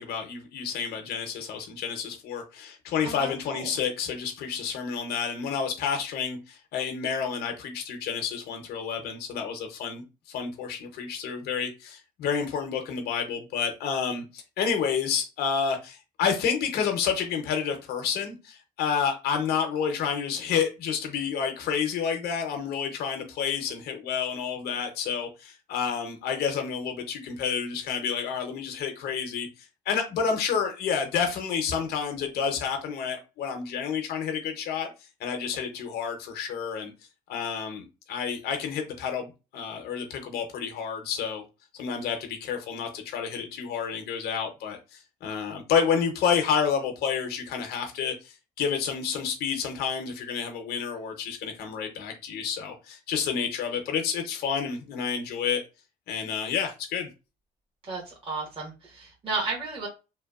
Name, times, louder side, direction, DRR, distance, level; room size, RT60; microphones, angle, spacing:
voice 1, 0.0-29.5 29.9-34.9 35.2-36.9 37.3-41.4 41.7-55.6 56.1-57.1, left 7 dB, 70° left, 0.6 m, -29 dB
voice 2, 3.0-3.7 57.8-59.9, right 3 dB, 30° right, 1.1 m, -33 dB
2.8 x 2.2 x 2.3 m
cardioid pair, 110°, 17 cm